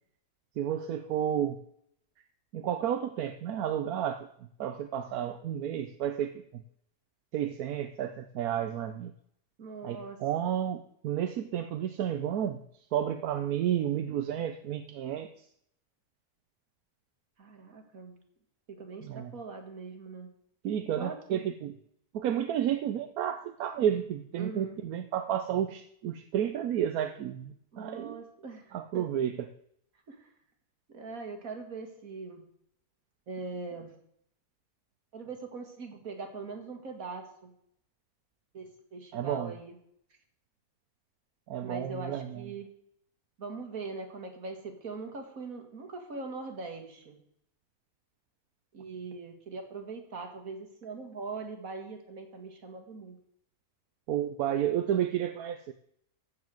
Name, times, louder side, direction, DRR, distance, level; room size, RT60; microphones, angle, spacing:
voice 1, 0.6-1.6 2.5-4.3 4.6-6.6 7.3-9.1 9.8-12.6 12.9-15.3 19.0-19.3 20.6-21.8 22.1-28.2 28.7-29.4 39.1-39.5 41.5-42.5 54.1-55.7, right 10 dB, 85° right, 8 dB, 1.2 m, -31 dB
voice 2, 9.6-10.2 17.4-18.2 18.7-20.3 20.9-21.4 24.4-24.8 27.7-29.0 30.1-30.3 30.9-32.5 33.3-33.9 35.1-37.5 38.5-39.8 41.6-42.7 43.4-47.2 48.7-53.2, right 4 dB, 70° right, 4 dB, 2.3 m, -41 dB
14.5 x 4.9 x 7.7 m, 0.69 s
omnidirectional pair, 1.5 m